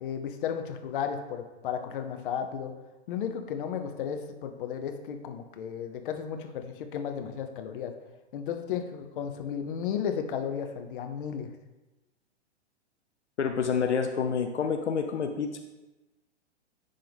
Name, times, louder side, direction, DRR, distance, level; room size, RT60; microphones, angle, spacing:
voice 1, 0.0-2.7 3.1-7.9 8.3-11.5, left 8 dB, 50° left, 6 dB, 0.8 m, -34 dB
voice 2, 13.4-15.6, left 6 dB, 80° left, 5 dB, 0.6 m, -28 dB
10.5 x 3.8 x 3.5 m, 1.1 s
figure-of-eight pair, 110°, 34 cm